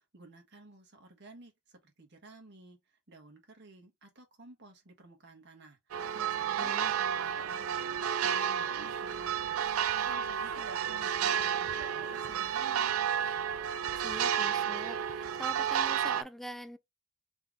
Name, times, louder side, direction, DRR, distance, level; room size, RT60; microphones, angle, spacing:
voice 1, 0.0-2.8 3.1-7.9 8.2-9.6 10.0-12.9, right 2 dB, 55° right, 1.5 m, -55 dB
sound 1, 5.9-16.2, right 8 dB, 80° right, 0.4 m, -31 dB
voice 2, 6.6-6.9 14.0-16.8, equal, ahead, 0.4 m, -44 dB
3.8 x 3.3 x 3.6 m
head